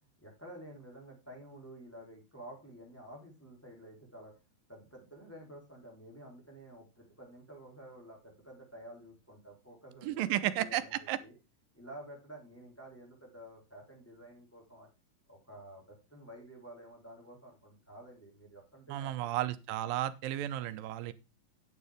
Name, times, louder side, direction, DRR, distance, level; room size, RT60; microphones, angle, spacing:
voice 1, 0.2-4.3 4.7-11.3 11.7-14.9 15.3-19.3, right 1 dB, 5° left, -2 dB, 3.2 m, -51 dB
voice 2, 10.0-10.8 11.1-11.2 18.9-21.1, right 13 dB, 80° right, 14 dB, 2.4 m, -33 dB
9.8 x 7.0 x 4.9 m, 0.29 s
omnidirectional pair, 4.1 m